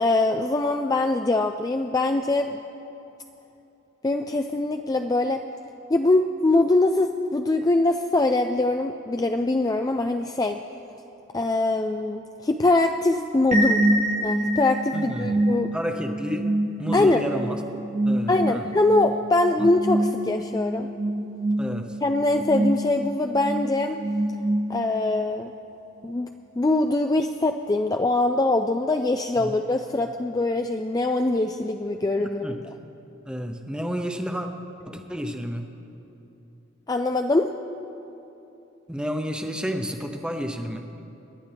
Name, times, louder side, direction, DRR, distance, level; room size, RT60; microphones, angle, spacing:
voice 1, 0.0-2.6 4.0-5.4 5.9-10.6 11.3-13.8 14.2-15.7 16.9-17.2 18.3-20.9 22.0-24.0 24.7-25.5 26.0-26.3 26.6-32.6 36.9-37.5, left 2 dB, 20° left, 5 dB, 0.3 m, -23 dB
sound 1, 13.5-25.1, right 1 dB, 35° right, 0.9 m, -26 dB
voice 2, 14.9-15.4 15.7-16.5 16.8-17.6 18.1-18.7 19.6-19.7 21.6-22.0 29.4-29.6 32.4-32.6 33.3-34.5 34.8-35.7 38.9-40.9, equal, 5° right, 5 dB, 0.8 m, -30 dB
28.0 x 11.0 x 3.4 m, 3.0 s
head